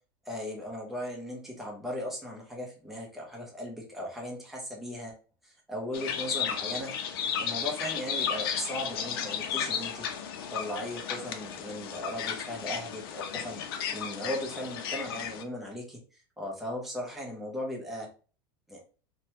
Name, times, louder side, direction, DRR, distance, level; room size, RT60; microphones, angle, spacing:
voice 1, 0.2-5.1 5.4-6.9 7.4-10.1 10.5-13.6 13.9-16.0 16.4-18.1 18.7-18.8, left 1 dB, ahead, -2 dB, 0.6 m, -37 dB
sound 1, 5.9-15.4, left 8 dB, 80° left, 0.5 m, -34 dB
2.9 x 2.1 x 2.8 m, 0.38 s
supercardioid pair, 155°, 12 cm